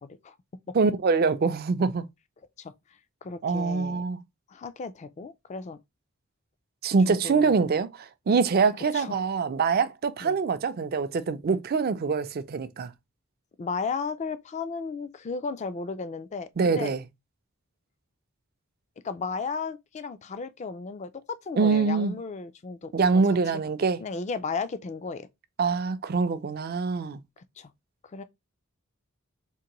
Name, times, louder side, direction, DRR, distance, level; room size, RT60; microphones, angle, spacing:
voice 1, 0.7-2.1 3.4-4.2 6.8-12.9 16.6-17.0 21.6-22.1 22.9-24.0 25.6-27.2, right 4 dB, 50° right, 0.4 m, -24 dB
voice 2, 3.2-4.0 4.5-5.8 7.1-7.6 8.9-9.2 10.2-10.4 13.6-16.9 19.0-23.2 23.5-23.6 24.0-25.3 27.4-27.7 28.0-28.2, left 4 dB, 35° left, 0.4 m, -34 dB
3.7 x 2.6 x 2.9 m
head